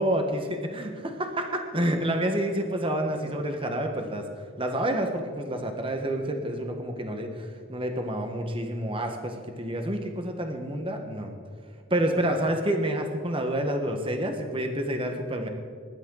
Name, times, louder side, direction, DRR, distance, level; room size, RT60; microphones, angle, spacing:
voice 1, 0.0-4.2 4.6-11.3 11.9-15.5, right 1 dB, 25° right, 4 dB, 1.4 m, -28 dB
22.0 x 11.5 x 4.0 m, 2.2 s
head